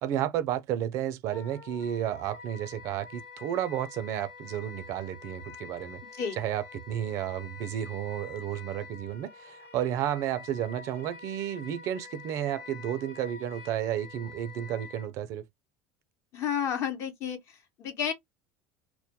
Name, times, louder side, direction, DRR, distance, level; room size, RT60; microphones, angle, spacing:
voice 1, 0.0-6.0 6.3-15.5, right 11 dB, 60° right, 0.4 m, -32 dB
Wind instrument woodwind instrument, 1.3-15.1, left 5 dB, 85° left, 1.0 m, -47 dB
voice 2, 16.3-17.4 17.8-18.1, left 8 dB, 50° left, 0.8 m, -30 dB
2.2 x 2.1 x 2.7 m
supercardioid pair, 110°, 6 cm